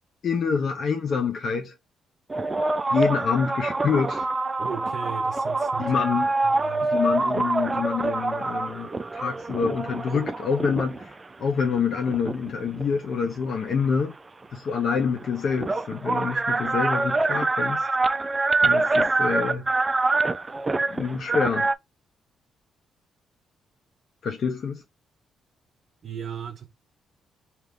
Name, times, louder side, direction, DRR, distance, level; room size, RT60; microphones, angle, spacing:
voice 1, 0.2-1.7 2.9-4.3 5.8-6.3 6.9-11.1 11.4-14.1 14.5-17.9 18.6-19.7 20.9-21.7 24.2-24.8, left 6 dB, 55° left, 0.6 m, -26 dB
sound 1, 2.3-11.1 11.8-13.5 14.7-14.8 15.0-21.7, right 3 dB, 25° right, 0.3 m, -25 dB
voice 2, 4.6-6.0 6.4-6.9 26.0-26.7, right 7 dB, 60° right, 0.7 m, -36 dB
3.4 x 2.9 x 3.6 m
cardioid pair, 100°, 0 cm